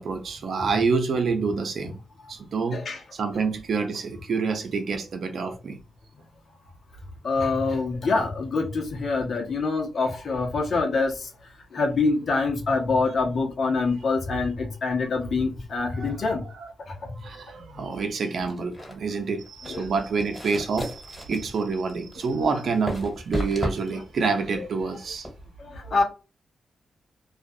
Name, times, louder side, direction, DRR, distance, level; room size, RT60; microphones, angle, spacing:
voice 1, 0.0-2.0 2.3-2.8 3.1-5.8 15.9-16.7 17.1-25.3, right 4 dB, 70° right, 0.6 m, -27 dB
voice 2, 7.2-11.1 11.7-16.4 19.7-19.9 24.6-24.7 25.9-26.0, left 3 dB, 65° left, 0.9 m, -25 dB
sound 1, 18.4-25.4, equal, 15° left, 1.5 m, -35 dB
2.4 x 2.4 x 2.6 m
cardioid pair, 55°, 0 cm